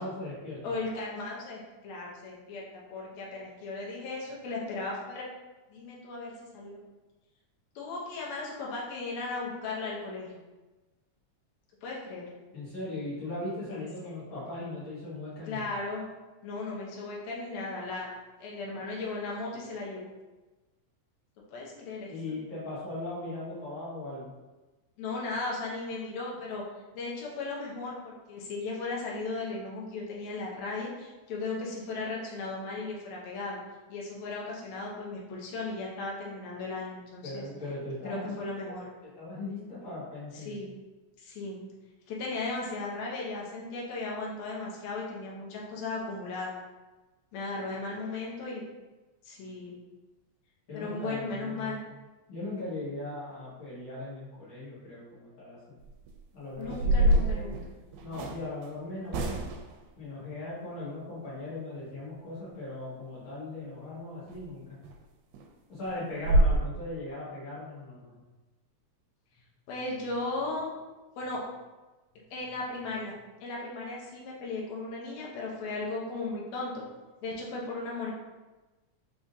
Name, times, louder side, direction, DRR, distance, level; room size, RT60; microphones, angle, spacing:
voice 1, 0.0-0.6 12.5-15.7 22.1-24.3 37.2-38.8 39.1-40.6 47.9-48.0 50.7-51.9 52.3-55.8 56.3-57.5 58.0-59.4 60.0-64.8 65.7-68.2, left 2 dB, 50° left, -9 dB, 2.0 m, -39 dB
voice 2, 0.6-5.3 5.7-6.8 7.8-10.4 11.8-12.3 13.8-14.1 15.5-16.1 16.4-18.1 18.4-20.1 21.5-22.1 25.0-26.6 26.9-33.6 33.9-37.4 38.0-38.8 40.3-40.7 41.2-41.7 42.1-46.5 47.3-48.7 49.2-49.8 50.7-51.8 56.6-57.6 69.7-70.7 71.2-71.4 72.3-73.1 73.4-76.8 77.2-78.1, left 3 dB, 75° left, -3 dB, 2.0 m, -36 dB
sound 1, 55.8-56.1 56.6-58.4 59.1-59.8 64.3-64.4 64.8-65.0 65.3-65.4 65.8-65.9 66.2-66.6, right 1 dB, 90° right, 2.0 m, -25 dB
5.0 x 3.6 x 2.7 m, 1.2 s
omnidirectional pair, 3.3 m